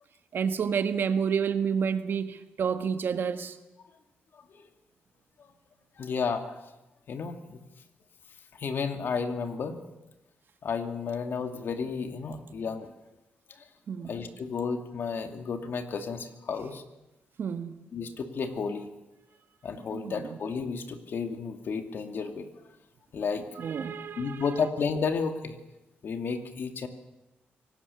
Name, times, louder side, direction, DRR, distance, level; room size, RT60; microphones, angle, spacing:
voice 1, 0.3-3.5 13.9-14.1 17.4-17.8 19.9-20.4 23.6-24.4, right 6 dB, 65° right, 1.5 m, -29 dB
voice 2, 6.0-6.5 7.1-7.6 8.5-9.8 10.6-12.9 13.6-13.7 14.0-16.8 17.9-18.9 19.6-22.5 23.1-23.4 23.8-25.6 26.0-26.9, left 5 dB, 60° left, 2.4 m, -32 dB
24.5 x 18.5 x 7.1 m
cardioid pair, 95°, 4 cm